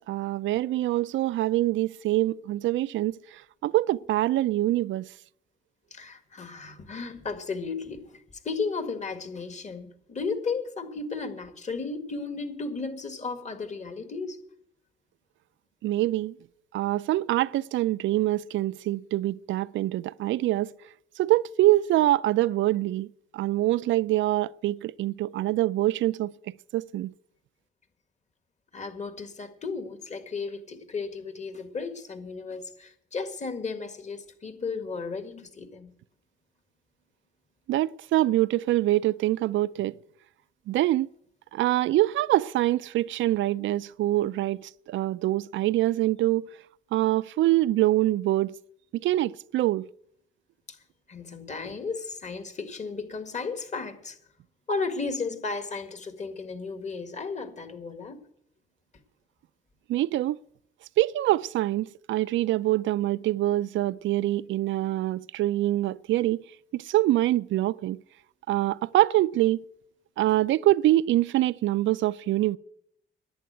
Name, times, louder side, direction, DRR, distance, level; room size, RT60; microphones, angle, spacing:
voice 1, 0.1-3.2 3.6-5.1 15.8-16.3 16.7-20.7 21.2-23.1 23.3-26.3 26.7-27.1 37.7-39.9 40.7-41.1 41.5-46.5 46.9-48.5 48.9-49.9 59.9-60.4 61.0-66.4 66.7-68.0 68.5-69.6 70.2-72.6, right 15 dB, 75° right, 0.4 m, -25 dB
voice 2, 5.9-14.4 28.7-35.9 50.7-50.8 51.1-54.2 54.7-58.2, left 4 dB, 35° left, 1.8 m, -34 dB
11.0 x 8.4 x 9.2 m
cardioid pair, 90°, 20 cm